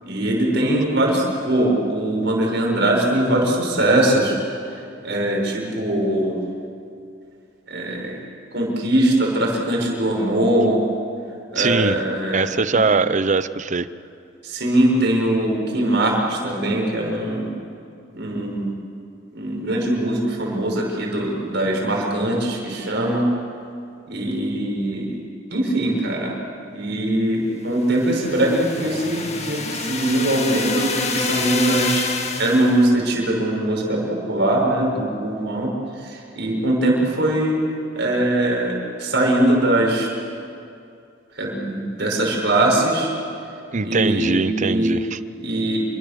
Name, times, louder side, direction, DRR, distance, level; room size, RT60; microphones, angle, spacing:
voice 1, 0.0-4.4 4.7-6.3 7.7-8.2 8.5-10.8 11.5-12.8 14.4-17.5 18.1-18.7 19.3-23.3 24.1-25.2 25.5-26.3 26.7-32.1 32.4-35.7 36.0-37.6 37.9-40.1 41.3-43.1 43.8-45.0 45.3-45.8, right 1 dB, 60° right, -1 dB, 6.3 m, -21 dB
voice 2, 11.6-12.0 12.3-13.9 43.7-45.2, right 4 dB, 40° right, 14 dB, 0.7 m, -21 dB
sound 1, 27.9-32.8, left 3 dB, 35° left, 2.0 m, -26 dB
28.5 x 24.0 x 7.0 m, 2.5 s
head